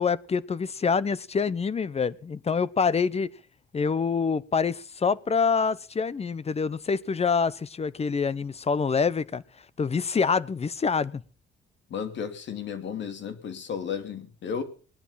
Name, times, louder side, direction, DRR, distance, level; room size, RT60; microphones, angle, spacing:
voice 1, 0.0-3.3 3.7-9.4 9.8-11.2, left 5 dB, 30° left, 20 dB, 0.9 m, -26 dB
voice 2, 11.9-14.6, left 7 dB, 65° left, 9 dB, 2.8 m, -33 dB
19.5 x 11.0 x 5.8 m, 0.40 s
cardioid pair, 90°, 20 cm